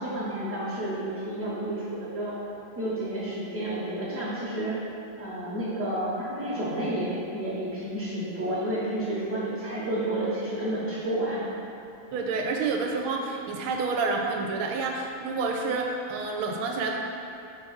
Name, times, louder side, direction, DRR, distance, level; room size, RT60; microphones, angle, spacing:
voice 1, 0.0-2.4 2.8-4.8 5.2-11.4, right 1 dB, 45° right, -10 dB, 1.2 m, -30 dB
voice 2, 12.1-17.0, right 4 dB, 80° right, 1 dB, 1.5 m, -29 dB
6.0 x 3.4 x 5.5 m, 2.7 s
omnidirectional pair, 2.4 m